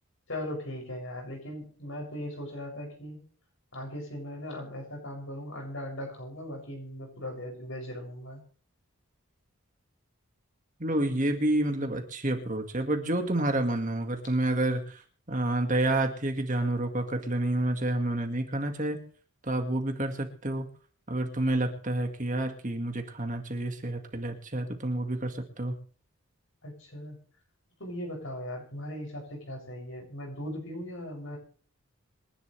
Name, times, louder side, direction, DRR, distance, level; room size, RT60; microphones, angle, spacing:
voice 1, 0.3-3.2 3.7-8.4 26.6-27.2 27.8-31.4, left 1 dB, 65° left, 1 dB, 7.3 m, -38 dB
voice 2, 10.8-15.0 15.3-19.0 19.4-20.7 21.1-25.8, right 1 dB, 35° right, 5 dB, 2.0 m, -29 dB
27.5 x 11.0 x 3.4 m, 0.43 s
head